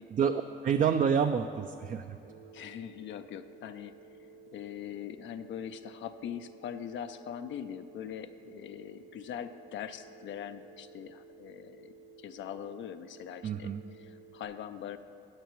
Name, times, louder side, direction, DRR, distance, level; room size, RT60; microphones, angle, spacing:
voice 1, 0.1-2.2 13.4-13.8, right 7 dB, 40° right, 8 dB, 0.4 m, -28 dB
Telephone, 2.3-14.5, right 4 dB, 85° right, 0.7 m, -54 dB
voice 2, 2.5-4.2 4.5-13.7 14.0-15.0, left 9 dB, 70° left, 9 dB, 0.4 m, -42 dB
14.0 x 9.1 x 3.0 m, 2.9 s
cardioid pair, 90°, 20 cm